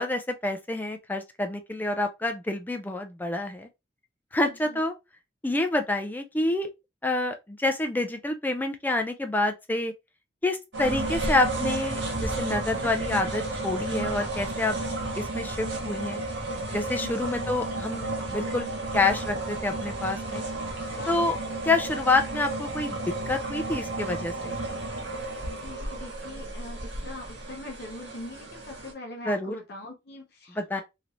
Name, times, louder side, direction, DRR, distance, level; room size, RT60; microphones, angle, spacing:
voice 1, 0.0-3.7 4.3-4.9 5.4-6.7 7.0-9.9 10.4-14.8 15.2-16.2 16.7-18.7 18.9-20.4 21.1-21.4 21.7-23.0 23.3-24.6 29.2-29.6 30.5-30.8, left 2 dB, 10° left, 0.4 m, -27 dB
voice 2, 4.5-4.8 12.8-12.9 17.0-17.5 20.9-21.4 25.6-30.8, left 2 dB, 60° left, 0.8 m, -42 dB
sound 1, 10.7-28.9, right 2 dB, 70° right, 1.1 m, -32 dB
3.2 x 2.9 x 2.5 m
head